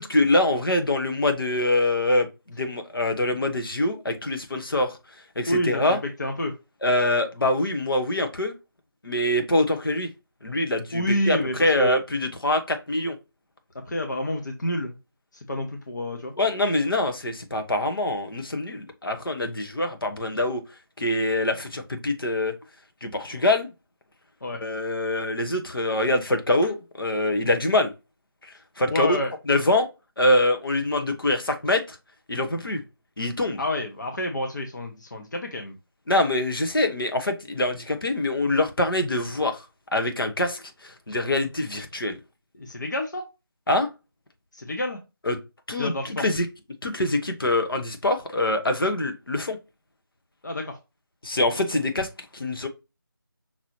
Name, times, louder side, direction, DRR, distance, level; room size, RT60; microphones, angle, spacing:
voice 1, 0.0-5.0 5.3-6.0 6.8-8.5 9.0-10.1 10.4-13.2 16.4-20.6 21.0-22.5 23.0-23.7 24.6-27.9 28.8-29.2 29.5-29.9 30.2-32.0 32.3-32.8 33.2-33.6 36.1-39.6 39.9-42.2 43.7-43.9 45.3-45.4 45.7-46.5 46.8-49.6 51.2-52.7, left 1 dB, 70° left, 1.2 m, -24 dB
voice 2, 5.5-6.5 10.9-12.0 13.9-15.0 15.3-16.3 24.4-24.6 28.9-29.3 33.6-35.8 42.5-43.2 44.5-45.0 45.8-46.3 50.4-50.8, left 1 dB, 50° left, 1.0 m, -28 dB
5.9 x 2.9 x 3.1 m
figure-of-eight pair, 165°, 12 cm